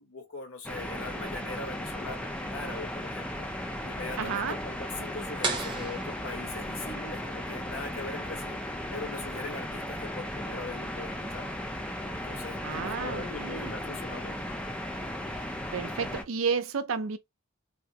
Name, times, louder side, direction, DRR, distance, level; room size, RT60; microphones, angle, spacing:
voice 1, 0.0-3.5 3.8-8.6 8.9-11.5 12.0-14.5, left 3 dB, 75° left, 1.2 m, -41 dB
sound 1, 0.6-16.2, left 1 dB, 5° left, 0.5 m, -36 dB
voice 2, 4.2-4.6 12.6-13.7 15.4-15.5 15.7-17.2, right 5 dB, 75° right, 0.5 m, -31 dB
sound 2, 5.4-7.1, right 4 dB, 20° right, 0.9 m, -35 dB
3.5 x 2.1 x 2.8 m
head